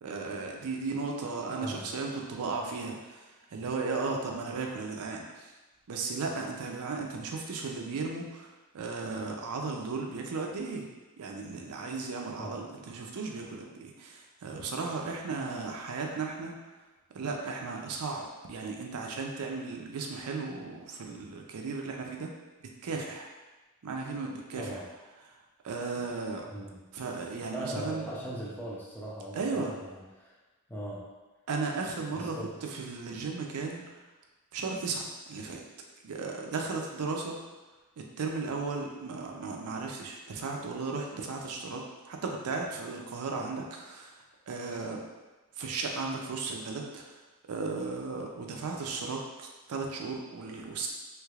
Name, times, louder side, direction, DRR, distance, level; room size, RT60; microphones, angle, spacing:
voice 1, 0.0-3.2 3.5-5.5 5.9-8.5 8.7-10.8 11.2-16.6 17.1-22.3 22.8-23.3 23.8-24.8 25.6-26.5 26.9-28.1 29.4-29.7 31.5-33.8 34.5-35.6 36.0-37.4 38.0-44.2 44.5-45.0 45.6-47.1 47.5-50.9, right 4 dB, 85° right, 1 dB, 0.5 m, -35 dB
voice 2, 1.6-1.9 12.4-12.7 24.6-24.9 26.5-26.9 27.5-30.4 30.7-31.1 32.1-32.6, right 1 dB, 10° left, -5 dB, 0.5 m, -39 dB
3.2 x 3.2 x 2.3 m, 1.2 s
head